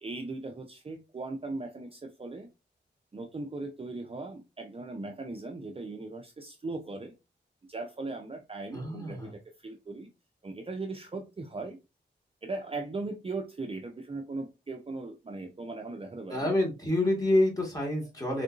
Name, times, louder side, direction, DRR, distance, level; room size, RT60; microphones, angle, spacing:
voice 1, 0.0-2.5 3.1-7.1 7.7-10.1 10.4-11.8 12.4-16.6, right 3 dB, 30° right, 0.5 m, -38 dB
voice 2, 8.7-9.3 16.3-18.4, left 1 dB, 20° left, 1.6 m, -27 dB
3.6 x 2.6 x 2.4 m
wide cardioid pair, 75°, 19 cm